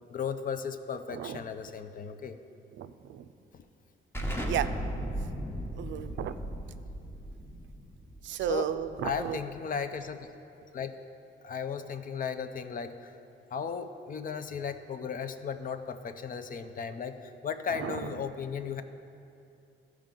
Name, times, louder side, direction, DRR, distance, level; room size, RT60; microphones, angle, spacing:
voice 1, 0.1-2.4 3.5-3.6 8.5-8.7 9.0-10.3 10.7-10.9 11.4-13.1 13.5-18.8, left 6 dB, 45° left, 10 dB, 0.5 m, -35 dB
voice 2, 2.8-3.3 4.5-4.7 5.8-6.4 8.2-9.4 17.7-18.1, right 10 dB, 70° right, 11 dB, 0.4 m, -33 dB
Explosion, 4.1-9.5, equal, 10° left, 1.0 m, -37 dB
13.5 x 4.7 x 3.8 m, 2.6 s
cardioid pair, 90°, 20 cm